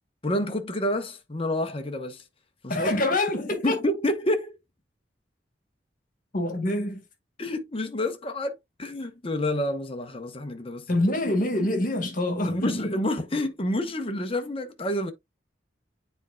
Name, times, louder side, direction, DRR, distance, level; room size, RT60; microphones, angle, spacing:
voice 1, 0.2-2.2 2.6-2.9 3.6-4.6 7.4-10.9 12.4-15.1, left 1 dB, 30° left, 1.0 m, -28 dB
voice 2, 2.7-3.8 6.3-7.0 10.9-13.0, left 1 dB, 50° left, 1.7 m, -26 dB
9.1 x 4.4 x 2.3 m
head